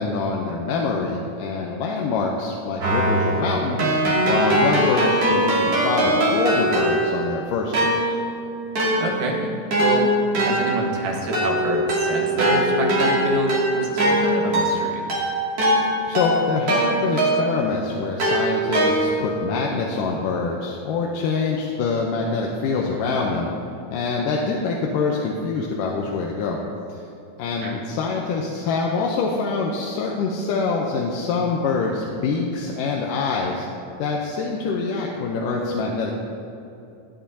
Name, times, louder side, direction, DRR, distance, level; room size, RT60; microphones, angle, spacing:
voice 1, 0.0-4.0 4.3-8.2 16.1-23.5 23.9-26.6 26.9-27.0 27.4-33.7 34.0-36.1, left 4 dB, 80° left, -1 dB, 2.3 m, -25 dB
Keyboard (musical), 2.8-7.3 7.7-17.7 18.2-19.4, right 1 dB, 50° right, 3.2 m, -21 dB
voice 2, 9.0-10.1 10.4-15.0 27.6-27.7, right 2 dB, 75° right, 0 dB, 2.8 m, -27 dB
16.0 x 9.3 x 2.8 m, 2.7 s
omnidirectional pair, 3.8 m